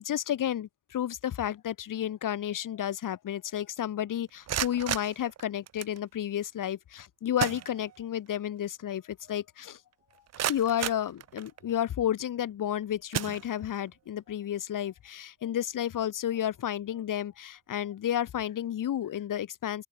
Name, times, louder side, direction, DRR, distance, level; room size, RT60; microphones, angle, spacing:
voice 1, 0.0-9.8 10.5-19.9, left 10 dB, 50° left, 2.7 m, -31 dB
sound 1, 4.3-6.0 7.0-7.1 7.4-8.3 8.6-8.7 9.3-9.4 9.9-11.8 12.4-12.6 13.1-13.9, right 10 dB, 40° right, 0.8 m, -35 dB
cardioid pair, 145°, 39 cm